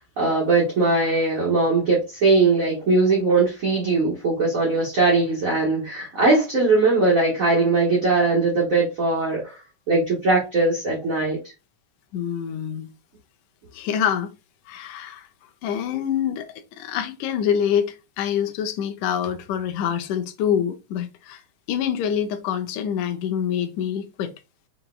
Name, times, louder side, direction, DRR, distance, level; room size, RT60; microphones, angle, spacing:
voice 1, 0.2-9.6 9.9-11.4, right 3 dB, 50° right, 1.0 m, -20 dB
voice 2, 12.1-12.9 13.7-14.3 14.7-15.3 15.6-21.4 21.7-24.3, left 8 dB, 90° left, 2.1 m, -26 dB
6.4 x 2.9 x 2.2 m
omnidirectional pair, 3.4 m